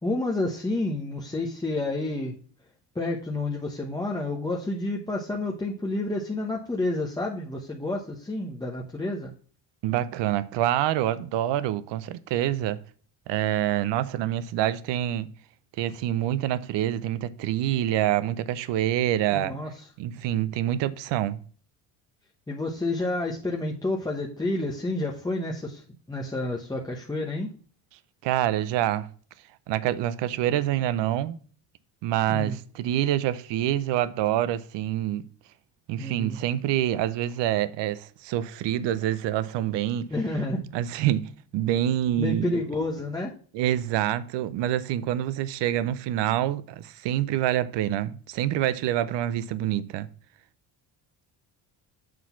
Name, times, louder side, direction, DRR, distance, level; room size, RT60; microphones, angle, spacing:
voice 1, 0.0-2.3 2.9-9.3 19.3-19.7 22.5-27.5 32.3-32.6 36.0-36.4 40.1-40.7 42.2-43.3, left 2 dB, 10° left, 1.0 m, -29 dB
voice 2, 9.8-12.8 13.3-15.3 15.8-19.5 20.0-21.4 28.2-29.1 29.7-31.4 32.0-35.2 35.9-40.1 40.7-42.6 43.5-50.1, right 12 dB, 75° right, 0.7 m, -26 dB
7.6 x 4.0 x 5.8 m
cardioid pair, 125°, 42 cm